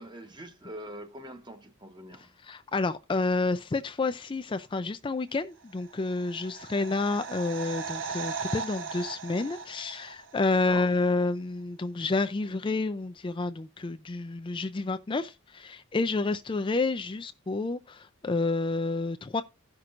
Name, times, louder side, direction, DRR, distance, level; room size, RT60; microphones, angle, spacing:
voice 1, 0.0-2.3 10.7-10.9, right 1 dB, 20° right, 1.1 m, -43 dB
voice 2, 2.1-19.4, left 3 dB, 25° left, 0.4 m, -29 dB
sound 1, 5.8-10.6 10.9-11.0, right 5 dB, 65° right, 0.8 m, -38 dB
16.5 x 5.9 x 2.5 m
head